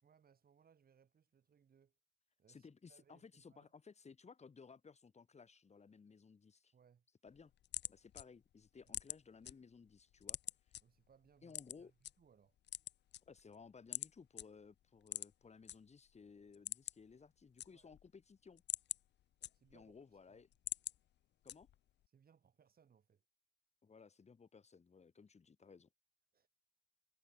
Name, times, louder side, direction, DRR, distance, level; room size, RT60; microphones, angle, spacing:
voice 1, 0.0-2.0 2.4-3.7 6.7-7.1 8.7-9.0 10.8-12.6 17.7-17.9 19.5-20.4 22.1-23.2 26.3-26.5, right 7 dB, 50° right, 5.5 m, -70 dB
voice 2, 2.5-6.7 7.2-7.5 7.9-10.4 11.4-11.9 13.3-18.6 19.7-20.5 21.4-21.7 23.8-25.9, left 5 dB, 35° left, 2.7 m, -59 dB
sound 1, 7.3-9.5 9.9-10.8 11.5-12.1 12.6-13.6 13.9-14.1 14.4-14.5 15.0-15.8 16.1-16.2 16.5-17.1 17.4-18.1 18.5-19.9 20.3-21.0 21.5-21.9, left 12 dB, 60° left, 0.6 m, -44 dB
cardioid pair, 90°, 20 cm